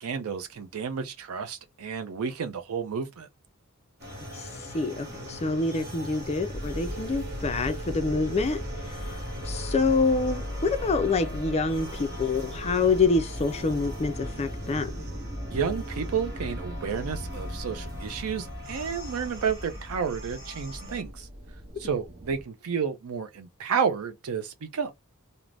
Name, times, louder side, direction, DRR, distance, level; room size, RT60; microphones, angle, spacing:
voice 1, 0.0-3.3 15.5-21.3 21.8-24.9, right 6 dB, 70° right, 0.5 m, -31 dB
sound 1, 4.0-21.0, equal, 45° right, 1.1 m, -42 dB
voice 2, 4.3-8.6 8.9-9.2 9.4-14.9, left 4 dB, 30° left, 0.4 m, -26 dB
sound 2, 6.5-22.4, equal, 25° right, 0.6 m, -37 dB
2.5 x 2.0 x 3.2 m
head